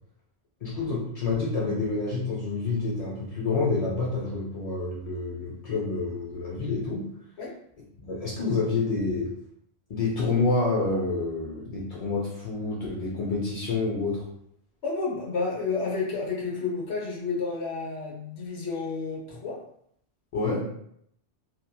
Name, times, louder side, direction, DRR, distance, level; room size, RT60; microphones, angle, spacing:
voice 1, 0.6-7.0 8.0-9.3 9.9-14.2 20.3-20.6, left 3 dB, 50° left, -4 dB, 0.4 m, -28 dB
voice 2, 14.8-19.6, left 4 dB, 70° left, -3 dB, 1.1 m, -30 dB
2.7 x 2.5 x 2.2 m, 0.69 s
omnidirectional pair, 1.2 m